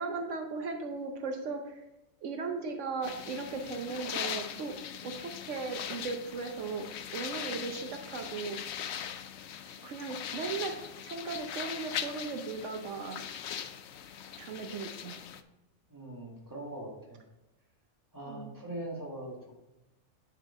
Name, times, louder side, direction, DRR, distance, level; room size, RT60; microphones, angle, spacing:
voice 1, 0.0-1.8 2.2-4.7 5.0-8.8 9.8-10.8 11.0-13.2 14.4-15.2 18.3-18.5, right 4 dB, 80° right, 4 dB, 1.1 m, -37 dB
sound 1, 3.0-15.4, left 9 dB, 70° left, 0.8 m, -40 dB
voice 2, 15.9-17.2 18.1-19.6, right 1 dB, 15° right, -3 dB, 2.0 m, -41 dB
10.0 x 4.8 x 3.6 m, 0.98 s
omnidirectional pair, 1.3 m